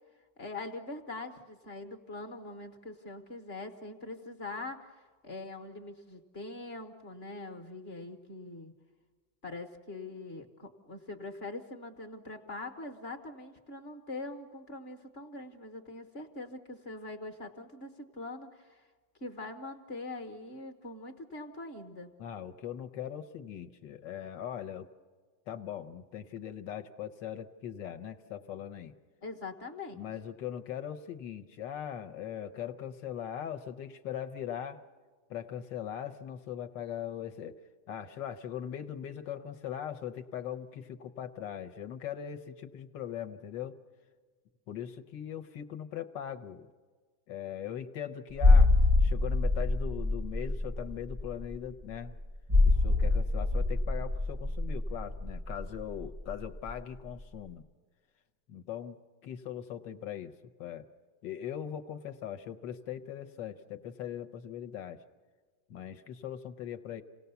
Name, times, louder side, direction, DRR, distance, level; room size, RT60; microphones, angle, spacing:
voice 1, 0.4-8.7 9.4-18.9 19.2-22.1 29.2-30.0, left 2 dB, 35° left, 5 dB, 1.2 m, -43 dB
voice 2, 22.2-24.9 25.5-28.9 29.9-34.8 35.3-37.6 37.9-43.7 44.7-46.7 47.3-48.7 49.0-52.2 52.6-57.6 58.5-60.3 60.6-60.9 61.2-65.0 65.7-67.0, left 9 dB, 65° left, 9 dB, 1.4 m, -40 dB
sound 1, 48.4-56.8 57.1-57.2, left 2 dB, 30° right, 0.3 m, -26 dB
28.0 x 18.0 x 6.9 m, 1.5 s
omnidirectional pair, 2.3 m